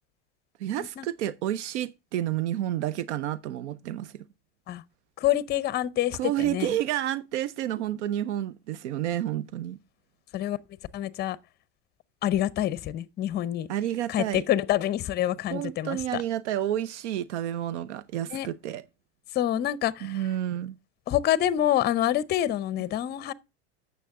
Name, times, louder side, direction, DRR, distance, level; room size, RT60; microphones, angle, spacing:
voice 1, 0.6-4.3 6.2-9.8 13.7-14.4 15.5-18.8 20.0-20.8, right 12 dB, 80° right, 0.6 m, -30 dB
voice 2, 5.2-6.8 10.3-10.6 10.9-11.4 12.2-13.7 14.1-16.2 18.3-18.5 19.3-20.2 21.1-23.3, left 12 dB, 30° left, 0.6 m, -27 dB
9.2 x 6.6 x 3.6 m
supercardioid pair, 115°, 34 cm